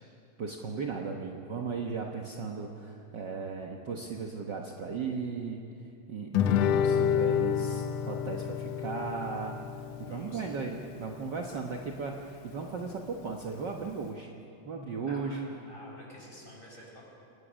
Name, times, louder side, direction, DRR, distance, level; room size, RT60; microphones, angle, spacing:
voice 1, 0.4-5.6 6.1-8.4 8.8-9.6 10.0-14.3 14.6-15.5, right 5 dB, 60° right, 1 dB, 1.1 m, -36 dB
Guitar, 6.3-11.4, left 8 dB, 75° left, 1.5 m, -29 dB
voice 2, 10.0-10.6 15.1-17.1, equal, 15° left, -3 dB, 6.1 m, -49 dB
28.0 x 20.0 x 6.4 m, 2.5 s
omnidirectional pair, 3.8 m